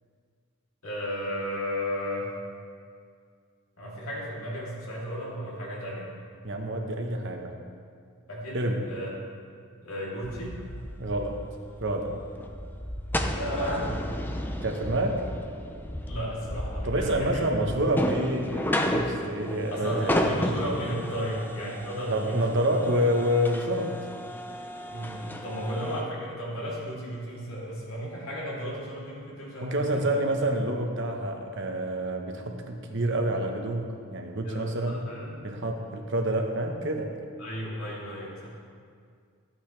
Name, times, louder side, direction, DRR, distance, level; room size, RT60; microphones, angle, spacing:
voice 1, 0.8-2.3 3.8-6.2 8.3-9.1 9.8-10.6 13.2-14.1 16.1-17.4 19.7-22.8 24.8-30.1 34.4-35.4 37.4-38.6, equal, 75° left, -6 dB, 3.0 m, -34 dB
voice 2, 6.4-7.5 8.5-8.9 11.0-11.4 11.8-12.2 14.6-15.3 16.8-20.2 22.1-24.0 29.6-35.1 35.4-37.2, right 1 dB, 60° right, 3 dB, 1.1 m, -28 dB
sound 1, 10.2-26.0, left 1 dB, 10° left, 0.5 m, -33 dB
14.0 x 9.0 x 3.3 m, 2.2 s
head